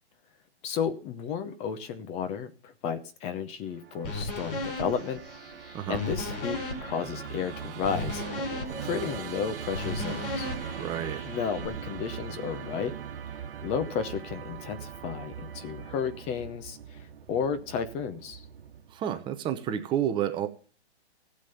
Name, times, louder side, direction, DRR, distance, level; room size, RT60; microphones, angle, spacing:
voice 1, 0.6-5.2 5.9-8.2 8.8-10.5 11.2-12.9 13.6-17.0 17.3-18.4, left 7 dB, 20° left, 10 dB, 0.8 m, -33 dB
Musical instrument, 3.7-19.0, right 8 dB, 55° right, 1.7 m, -41 dB
sound 1, 4.0-11.7, left 1 dB, 50° left, 5.0 m, -36 dB
voice 2, 10.8-11.2 18.9-20.5, right 10 dB, 15° right, 8 dB, 0.8 m, -30 dB
15.5 x 7.5 x 6.7 m, 0.38 s
hypercardioid pair, 145°, 33 cm